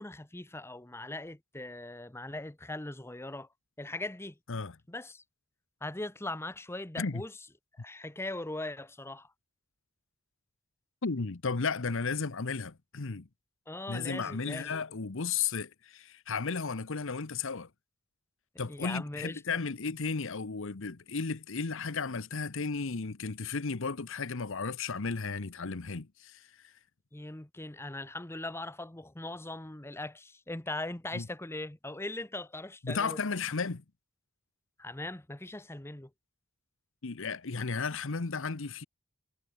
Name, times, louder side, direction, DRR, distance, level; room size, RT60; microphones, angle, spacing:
voice 1, 0.0-3.5 3.8-4.3 4.9-5.2 5.8-7.3 7.8-9.3 13.7-14.8 18.7-19.4 27.1-33.2 34.8-36.1, left 2 dB, 10° left, 1.0 m, -40 dB
voice 2, 11.0-13.3 13.9-17.7 18.6-26.7 31.1-31.3 32.8-33.8 37.0-38.8, left 4 dB, 65° left, 1.0 m, -34 dB
head